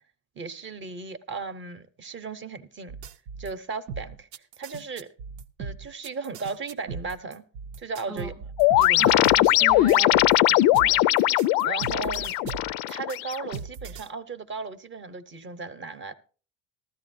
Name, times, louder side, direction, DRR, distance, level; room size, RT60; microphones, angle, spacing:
voice 1, 0.3-3.0 3.4-5.1 5.6-7.4 7.8-8.3 8.8-9.4 10.8-11.1 11.6-12.4 12.9-16.1, right 4 dB, 30° right, 0.8 m, -36 dB
sound 1, 2.9-3.5 3.9-10.4 10.7-14.1, right 6 dB, 85° right, 0.8 m, -38 dB
sound 2, 8.6-13.6, left 15 dB, 65° left, 0.5 m, -20 dB
voice 2, 9.0-10.7, right 3 dB, 5° right, 0.4 m, -38 dB
15.0 x 13.0 x 2.6 m
supercardioid pair, 115°, 39 cm